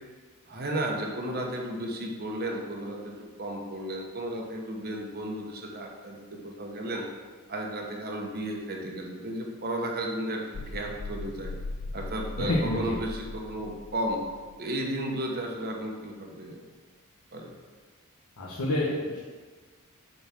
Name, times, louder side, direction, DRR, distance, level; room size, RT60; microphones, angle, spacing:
voice 1, 0.5-7.0 7.5-11.5 11.9-14.2 14.6-16.6 17.3-17.5, right 1 dB, 45° right, 1 dB, 1.2 m, -34 dB
sound 1, 10.5-14.6, left 2 dB, 45° left, 0.4 m, -39 dB
voice 2, 12.4-12.9 18.4-19.2, left 1 dB, 85° left, -5 dB, 1.2 m, -28 dB
6.9 x 4.3 x 6.0 m, 1.4 s
head